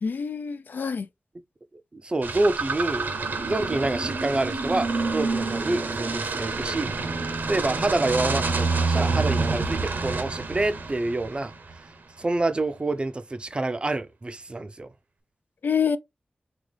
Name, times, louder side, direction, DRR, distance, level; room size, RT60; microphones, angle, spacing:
voice 1, 0.0-1.1 15.6-16.0, left 6 dB, 75° left, 0.4 m, -26 dB
voice 2, 1.9-3.1 3.4-7.0 7.5-11.5 12.2-14.9, right 2 dB, 30° right, 0.5 m, -27 dB
sound 1, 2.2-11.7, right 3 dB, 75° right, 0.9 m, -27 dB
3.9 x 3.0 x 3.2 m
wide cardioid pair, 85°, 3 cm